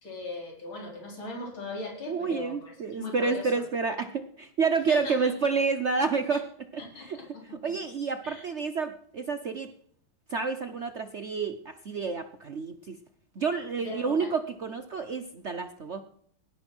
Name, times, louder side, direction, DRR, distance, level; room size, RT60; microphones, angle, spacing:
voice 1, 0.0-3.6 4.9-5.2 6.3-6.4 6.8-7.4 8.2-8.5 13.8-14.3, left 2 dB, 65° left, 0 dB, 4.8 m, -39 dB
voice 2, 2.1-6.4 6.7-7.2 7.6-9.7 10.3-13.0 13.4-16.0, right 4 dB, 80° right, 7 dB, 0.6 m, -29 dB
18.0 x 11.0 x 6.1 m, 0.64 s
omnidirectional pair, 2.4 m